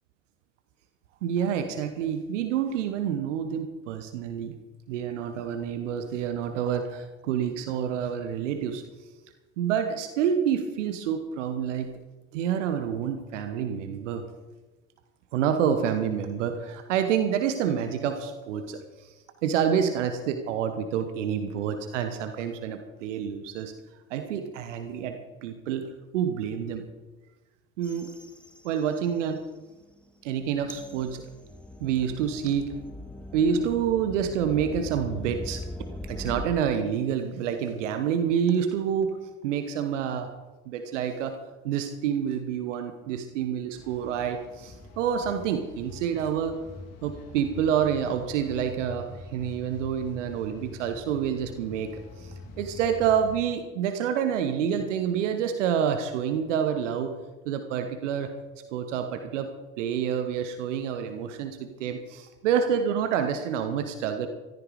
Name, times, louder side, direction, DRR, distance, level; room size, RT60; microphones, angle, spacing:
voice 1, 1.2-4.5 4.9-8.8 9.6-11.9 12.3-14.2 15.3-19.1 19.4-23.7 24.1-26.8 27.8-28.1 28.6-29.4 30.2-31.2 31.8-32.7 33.3-35.6 36.1-39.2 39.4-40.3 40.7-41.4 41.6-46.6 47.0-51.9 52.2-57.1 57.4-58.3 58.7-59.5 59.8-64.3, right 8 dB, 75° right, 8 dB, 1.1 m, -28 dB
sound 1, 27.8-29.4 29.8-36.5, left 1 dB, 5° left, 2.1 m, -41 dB
sound 2, 43.7-53.4, left 2 dB, 45° left, 3.3 m, -45 dB
14.5 x 13.5 x 5.0 m, 1.2 s
figure-of-eight pair, 50°, 37 cm